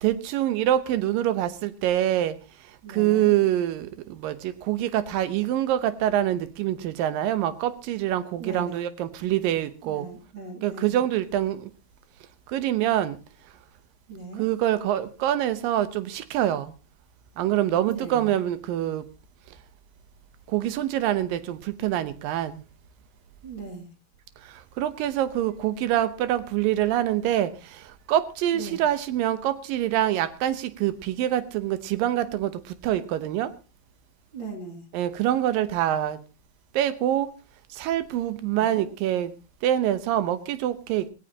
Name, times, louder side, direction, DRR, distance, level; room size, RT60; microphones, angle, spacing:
voice 1, 0.0-2.4 2.9-10.1 10.6-11.7 12.5-13.2 14.4-16.7 17.4-19.0 20.5-22.6 24.8-27.5 28.1-32.5 32.8-33.5 34.9-36.2 36.8-37.3 37.8-39.3 39.6-41.1, right 12 dB, 75° right, 2.6 m, -25 dB
voice 2, 2.8-3.3 8.4-8.9 9.8-11.0 14.1-14.5 17.9-18.3 23.4-23.9 28.5-28.8 34.3-34.9 38.5-38.9, right 4 dB, 35° right, 2.9 m, -38 dB
18.0 x 17.5 x 2.9 m
omnidirectional pair, 4.2 m